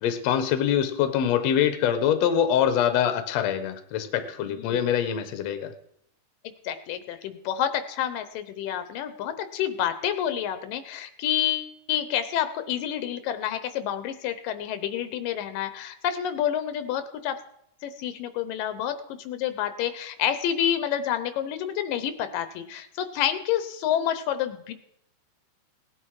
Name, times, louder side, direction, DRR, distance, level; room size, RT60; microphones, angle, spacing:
voice 1, 0.0-5.7, left 9 dB, 65° left, 9 dB, 2.0 m, -24 dB
voice 2, 4.5-4.8 6.7-17.4 17.8-24.7, left 10 dB, 85° left, 11 dB, 2.5 m, -29 dB
18.0 x 10.0 x 4.8 m, 0.74 s
omnidirectional pair, 3.9 m